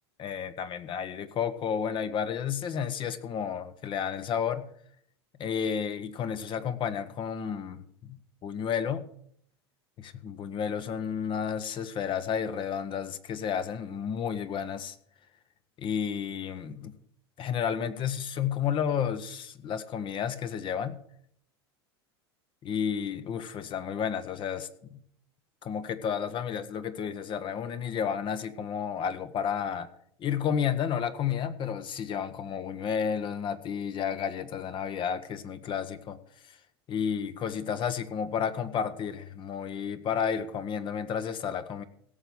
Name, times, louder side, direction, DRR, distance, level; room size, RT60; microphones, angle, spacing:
voice 1, 0.2-4.7 5.4-9.0 10.2-14.9 15.8-16.9 17.4-21.0 22.6-25.0 25.6-29.9 30.2-36.2 36.9-41.8, left 7 dB, 35° left, 1.3 m, -31 dB
16.5 x 6.9 x 6.2 m
hypercardioid pair, 90°, 14 cm